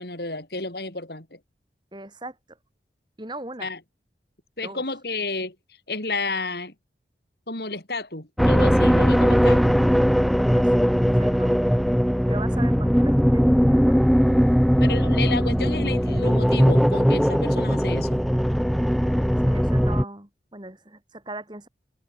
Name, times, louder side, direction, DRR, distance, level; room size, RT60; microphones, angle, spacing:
voice 1, 0.0-1.4 3.6-3.8 4.6-5.5 5.9-6.7 7.5-9.7 14.8-18.2, left 3 dB, 65° left, 4.8 m, -31 dB
voice 2, 1.9-2.6 3.2-3.7 4.6-4.8 10.3-10.9 11.2-11.9 12.3-14.1 19.4-21.7, right 2 dB, 25° right, 2.8 m, -39 dB
sound 1, 8.4-20.0, equal, ahead, 0.4 m, -19 dB
head